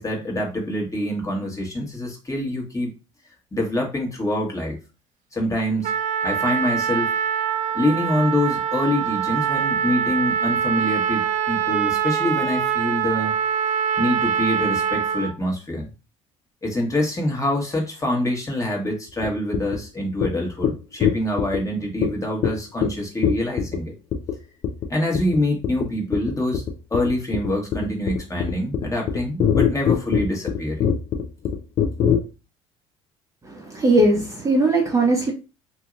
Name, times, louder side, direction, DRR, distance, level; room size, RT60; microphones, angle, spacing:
voice 1, 0.0-2.9 3.5-4.8 5.3-5.9 6.2-7.1 7.7-13.4 14.0-15.9 16.6-23.9 24.9-26.6 26.9-30.9, left 1 dB, 20° left, 0 dB, 1.3 m, -25 dB
Trumpet, 5.8-15.3, right 8 dB, 50° right, 0.4 m, -24 dB
sound 1, 19.2-19.3 19.5-19.8 20.2-20.3 20.6-20.7 21.0-21.6 22.0-22.1 22.4-22.5 22.8-22.9 23.2-23.8 24.1-24.3 24.6-24.9 25.1-25.4 25.6-25.9 26.1-32.2, left 8 dB, 45° left, 0.7 m, -21 dB
voice 2, 33.4-35.3, right 2 dB, 20° right, 0 dB, 0.8 m, -19 dB
2.8 x 2.7 x 2.4 m, 0.30 s
hypercardioid pair, 70°, 16 cm